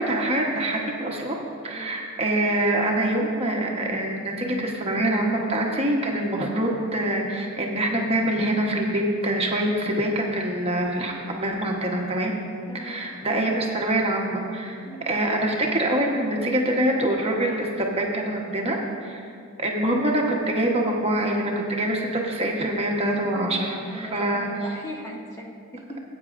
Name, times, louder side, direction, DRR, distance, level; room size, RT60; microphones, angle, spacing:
voice 1, 0.0-1.4 1.6-12.3 12.7-19.2 19.6-24.5, right 1 dB, 25° right, -1 dB, 1.0 m, -25 dB
voice 2, 12.7-13.1 14.8-15.0 23.8-26.0, equal, 15° left, -2 dB, 0.8 m, -39 dB
18.0 x 8.8 x 2.5 m, 2.4 s
head